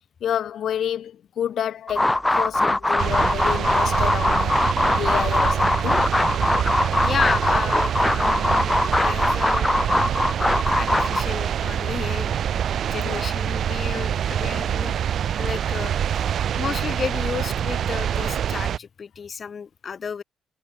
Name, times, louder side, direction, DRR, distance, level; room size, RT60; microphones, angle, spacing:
voice 1, 0.2-6.1 13.0-13.2, left 9 dB, 65° left, 1.4 m, -29 dB
sound 1, 1.9-11.2, left 2 dB, 10° left, 2.5 m, -21 dB
sound 2, 3.0-18.8, right 9 dB, 65° right, 3.3 m, -25 dB
voice 2, 7.0-9.7 10.8-12.5 12.9-15.0 15.4-16.2 16.5-20.2, left 6 dB, 45° left, 3.2 m, -32 dB
cardioid pair, 90°, 0 cm